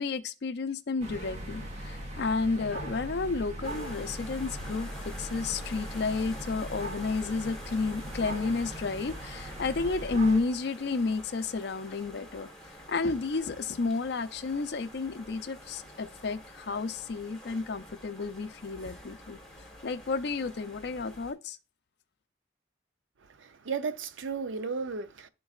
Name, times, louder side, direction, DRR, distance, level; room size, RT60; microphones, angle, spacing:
voice 1, 0.0-4.9 5.2-12.5 12.9-19.4 19.8-21.6, left 4 dB, 60° left, 0.4 m, -31 dB
sound 1, 1.0-10.4, right 1 dB, 35° right, 1.1 m, -39 dB
sound 2, 3.6-21.3, equal, 5° left, 1.2 m, -47 dB
voice 2, 23.4-25.3, right 5 dB, 80° right, 0.5 m, -34 dB
11.0 x 3.9 x 2.4 m
head